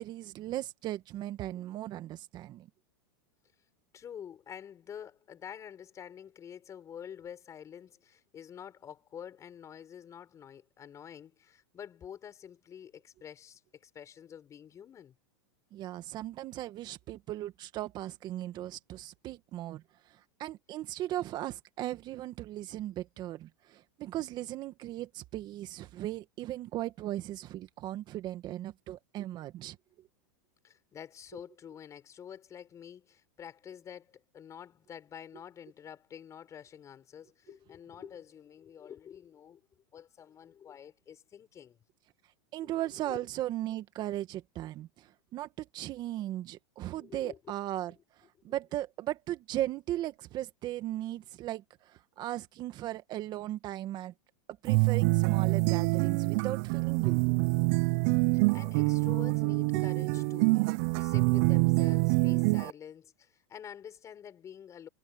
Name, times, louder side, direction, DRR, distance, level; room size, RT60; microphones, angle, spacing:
voice 1, 0.0-2.7 15.7-29.8 42.5-47.9 48.2-54.1 54.6-57.4, right 14 dB, 40° right, 1.7 m, -37 dB
voice 2, 3.9-15.2 30.6-39.6 39.9-41.8 42.6-43.2 47.0-47.5 58.3-64.9, left 8 dB, 25° left, 5.9 m, -48 dB
sound 1, 54.7-62.7, right 29 dB, 55° right, 0.5 m, -26 dB
hypercardioid pair, 120°, 11 cm